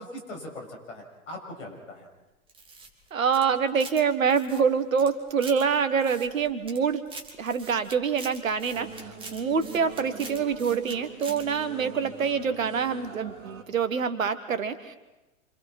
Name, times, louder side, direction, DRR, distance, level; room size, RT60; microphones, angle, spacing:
voice 1, 0.0-2.1, left 1 dB, 65° left, 1 dB, 7.3 m, -40 dB
sound 1, 2.5-4.0 4.3-5.6 6.0-6.8 7.1-10.9 11.2-11.4, right 3 dB, 10° right, 2.8 m, -44 dB
voice 2, 3.1-7.0 7.4-15.0, right 6 dB, 70° right, 11 dB, 1.8 m, -26 dB
sound 2, 8.7-13.6, right 5 dB, 30° right, 3.5 m, -43 dB
29.0 x 27.0 x 4.6 m, 1.0 s
figure-of-eight pair, 105°, 41 cm